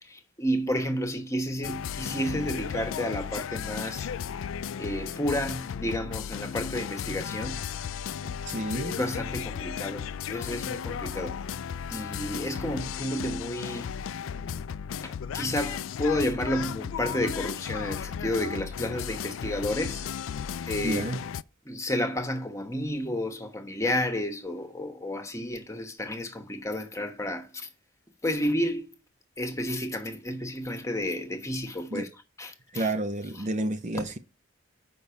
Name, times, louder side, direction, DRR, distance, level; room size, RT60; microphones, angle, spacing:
voice 1, 0.0-4.1 4.8-7.6 8.9-11.4 11.9-13.9 15.0-20.1 20.7-21.0 21.6-27.7 28.2-28.9 29.4-32.1 32.4-32.9, left 1 dB, 15° left, 1.1 m, -31 dB
sound 1, 1.6-21.4, left 8 dB, 85° left, 0.4 m, -35 dB
voice 2, 8.2-9.0 20.8-21.2 31.9-32.1 32.7-34.2, right 2 dB, 35° right, 0.6 m, -30 dB
6.6 x 5.3 x 6.9 m
head